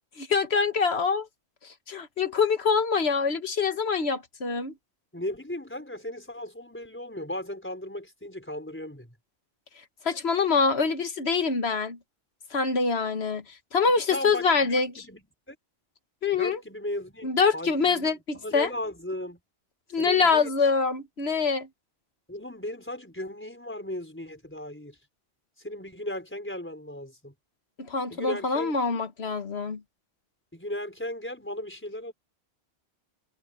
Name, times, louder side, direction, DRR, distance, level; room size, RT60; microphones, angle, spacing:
voice 1, 0.2-1.3 1.9-4.7 10.1-12.0 12.5-13.4 13.7-15.0 16.2-16.6 17.2-18.2 18.5-18.7 19.9-21.7 27.8-29.8, left 5 dB, 75° left, 1.7 m, -25 dB
voice 2, 5.1-9.1 13.9-15.6 16.3-19.4 19.9-20.7 22.3-25.0 25.6-27.3 28.1-28.7 30.5-32.1, left 1 dB, 10° left, 4.8 m, -36 dB
omnidirectional pair, 1.1 m